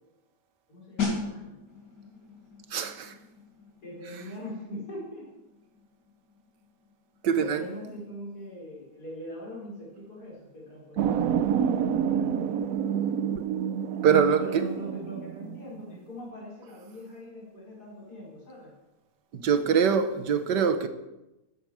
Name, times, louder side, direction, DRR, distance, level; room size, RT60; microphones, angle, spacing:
voice 1, 0.7-1.6 3.8-5.3 7.4-12.4 14.4-18.7, equal, 65° left, 5.4 m, -42 dB
sound 1, 1.0-11.5 11.8-12.0, left 4 dB, 85° left, 4.1 m, -40 dB
voice 2, 2.7-3.2 7.2-7.6 14.0-14.6 19.3-20.9, right 7 dB, 90° right, 1.8 m, -23 dB
sound 2, 11.0-16.0, right 8 dB, 65° right, 1.0 m, -28 dB
15.0 x 11.5 x 6.3 m
omnidirectional pair, 1.8 m